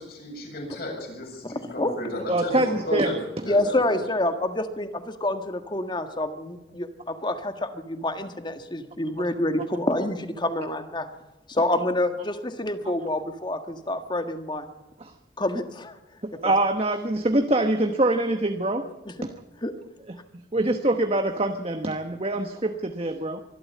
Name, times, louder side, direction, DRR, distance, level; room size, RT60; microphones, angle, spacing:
voice 1, 0.0-3.2 3.4-4.0, left 1 dB, 50° left, 0 dB, 7.7 m, -33 dB
voice 2, 1.4-2.0 3.4-11.1 11.5-14.6 15.4-15.9 16.4-16.5 19.6-19.7, left 1 dB, 25° left, 8 dB, 1.5 m, -27 dB
voice 3, 2.3-3.1 15.0-15.1 16.2-18.9 19.2-19.3 20.1-20.2 20.5-23.4, right 2 dB, 30° right, 6 dB, 1.1 m, -24 dB
24.0 x 13.0 x 8.5 m, 1.0 s
head